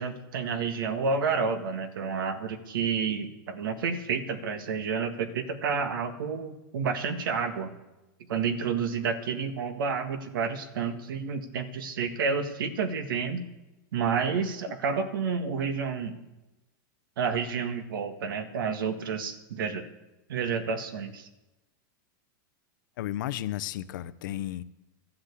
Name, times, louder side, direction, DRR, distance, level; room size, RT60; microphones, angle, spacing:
voice 1, 0.0-7.7 8.3-13.5 13.9-16.2 17.2-19.9 20.3-21.3, right 5 dB, 80° right, 8 dB, 1.7 m, -30 dB
voice 2, 23.0-24.6, left 13 dB, 65° left, 14 dB, 0.8 m, -33 dB
13.5 x 7.8 x 8.4 m, 1.0 s
supercardioid pair, 150°, 11 cm